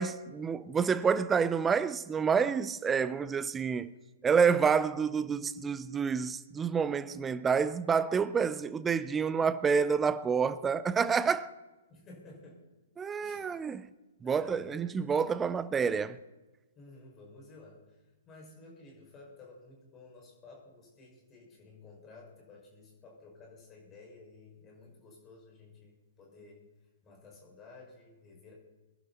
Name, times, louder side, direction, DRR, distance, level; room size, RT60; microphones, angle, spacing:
voice 1, 0.0-3.9 4.2-11.5 13.0-13.9 14.2-16.2, right 6 dB, 15° right, 0.6 m, -28 dB
voice 2, 11.9-12.6 13.2-13.6 14.2-15.5 16.7-26.6 27.0-28.5, left 3 dB, 20° left, 5.8 m, -53 dB
23.0 x 11.0 x 4.2 m
figure-of-eight pair, 120°, 0 cm